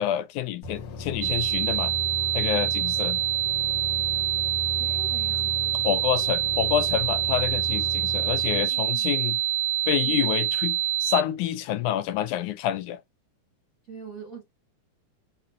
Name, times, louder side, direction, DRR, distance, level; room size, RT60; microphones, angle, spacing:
voice 1, 0.0-1.9 2.3-3.2 5.8-9.4 9.9-13.0, left 11 dB, 80° left, 2.1 m, -27 dB
sound 1, 0.6-8.6, left 2 dB, 60° left, 1.5 m, -37 dB
sound 2, 1.2-11.2, right 13 dB, 80° right, 1.9 m, -26 dB
voice 2, 4.8-6.3 8.3-9.1 10.0-10.5 13.9-14.4, right 7 dB, 55° right, 0.9 m, -45 dB
6.8 x 2.7 x 2.4 m
omnidirectional pair, 3.6 m